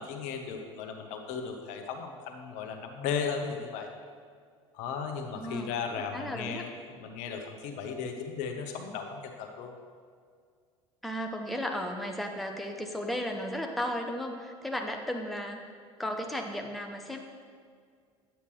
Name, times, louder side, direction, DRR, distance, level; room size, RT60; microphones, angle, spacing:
voice 1, 0.0-3.9 4.7-6.7 7.0-9.7, left 6 dB, 50° left, 4 dB, 0.9 m, -36 dB
voice 2, 5.3-6.6 11.0-15.6 16.0-17.2, equal, ahead, 3 dB, 0.7 m, -35 dB
8.9 x 8.2 x 3.1 m, 2.1 s
figure-of-eight pair, 65°, 16 cm